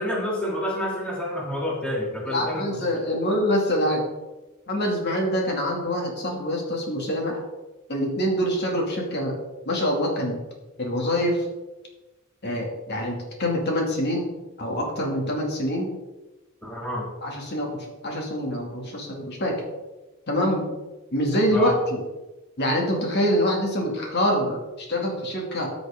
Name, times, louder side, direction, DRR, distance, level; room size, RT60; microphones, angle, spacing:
voice 1, 0.0-2.6 16.6-17.1 21.5-21.7, left 1 dB, 5° left, -4 dB, 2.4 m, -28 dB
voice 2, 2.3-4.0 4.7-7.4 7.9-9.4 9.7-10.4 10.8-11.5 12.4-14.3 14.6-15.9 17.2-19.7 20.3-20.7 21.1-22.0 22.6-25.7, equal, 50° left, 0 dB, 2.3 m, -25 dB
14.0 x 7.8 x 3.6 m, 1.1 s
head